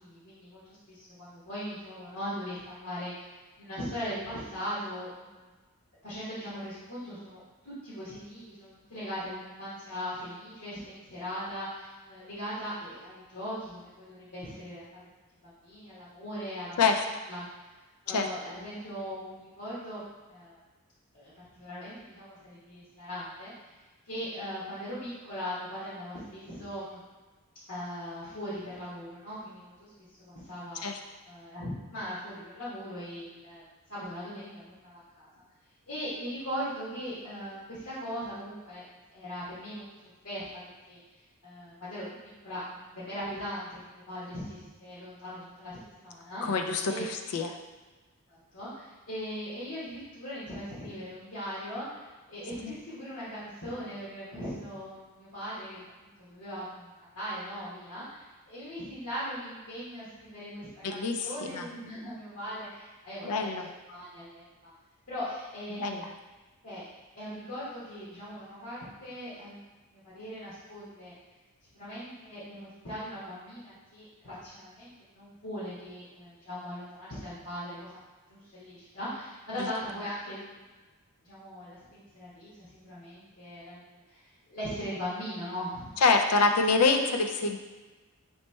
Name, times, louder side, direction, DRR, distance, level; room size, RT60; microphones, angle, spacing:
voice 1, 0.0-3.3 3.6-5.5 6.0-15.0 15.4-16.8 17.3-17.5 18.0-20.0 20.3-20.6 21.1-23.5 24.0-27.0 27.7-29.9 30.3-30.9 31.3-33.6 33.9-35.3 35.9-38.8 39.1-39.8 40.2-41.0 41.4-42.0 42.4-46.6 46.9-47.0 48.3-63.5 63.9-64.7 65.1-66.1 66.6-66.8 67.1-71.1 71.7-77.9 78.3-80.5 81.2-83.8 84.1-85.9, equal, 65° left, -11 dB, 1.3 m, -39 dB
voice 2, 46.4-47.5 52.6-52.7 60.8-61.7 63.2-63.7 65.7-66.1 86.0-87.6, left 4 dB, 85° left, 5 dB, 0.4 m, -26 dB
3.1 x 3.1 x 4.3 m, 1.3 s
head